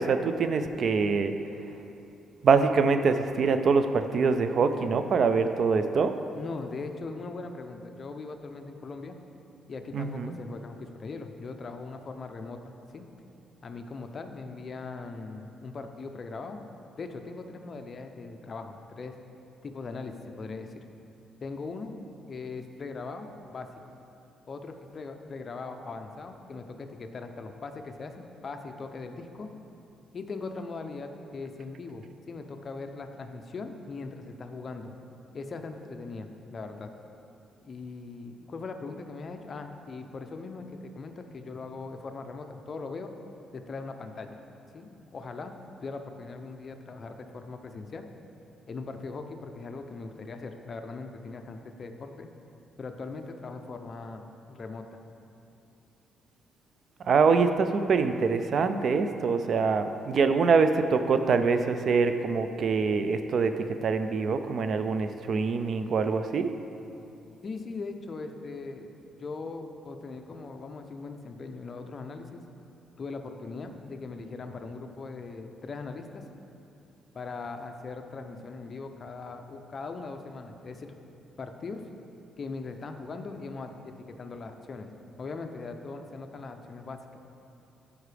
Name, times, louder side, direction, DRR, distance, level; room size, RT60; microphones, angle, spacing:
voice 1, 0.0-1.3 2.4-6.1 9.9-10.3 57.1-63.5 63.8-66.5, right 5 dB, 50° right, 9 dB, 0.4 m, -24 dB
voice 2, 6.3-9.2 9.7-13.1 13.6-16.6 17.0-19.2 19.6-20.8 21.4-22.0 22.3-23.7 24.5-29.5 30.1-34.9 35.3-36.9 37.6-43.1 43.5-44.4 44.7-45.5 45.8-48.1 48.7-52.3 52.8-54.2 54.5-55.0 67.4-68.9 69.2-72.4 73.0-76.2 77.1-80.9 81.4-81.8 82.4-84.9 85.2-87.2, left 3 dB, 40° left, 6 dB, 0.5 m, -40 dB
13.0 x 4.9 x 3.3 m, 2.8 s
cardioid pair, 120°, 0 cm